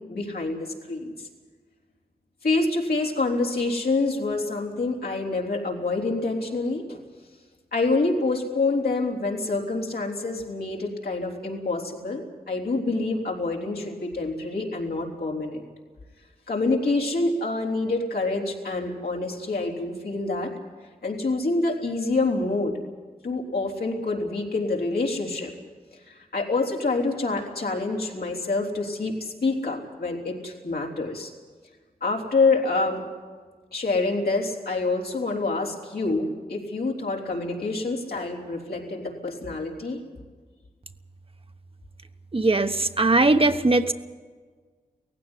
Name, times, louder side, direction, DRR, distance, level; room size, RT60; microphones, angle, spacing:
voice 1, 0.1-1.3 2.4-7.0 7.7-15.7 16.5-20.5 21.0-22.7 23.2-25.5 26.1-31.3 32.0-33.1 33.7-40.0, left 3 dB, 80° left, -1 dB, 3.7 m, -27 dB
voice 2, 42.3-43.9, right 2 dB, 35° right, 7 dB, 1.1 m, -20 dB
18.0 x 15.5 x 9.8 m, 1.5 s
cardioid pair, 55°, 16 cm